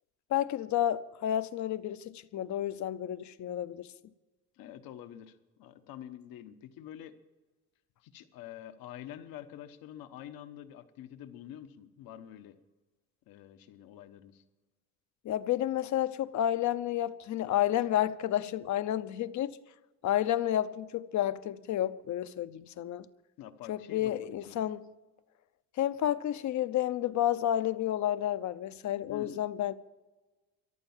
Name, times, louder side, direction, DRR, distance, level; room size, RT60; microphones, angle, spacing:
voice 1, 0.3-3.9 15.2-19.6 20.0-23.1 23.7-24.9 25.8-29.7, left 12 dB, 55° left, 0.7 m, -30 dB
voice 2, 4.5-7.2 8.0-12.6 13.3-14.4 23.4-24.6 29.1-29.4, left 11 dB, 75° left, 1.2 m, -47 dB
14.0 x 11.5 x 7.3 m
cardioid pair, 120°, 35 cm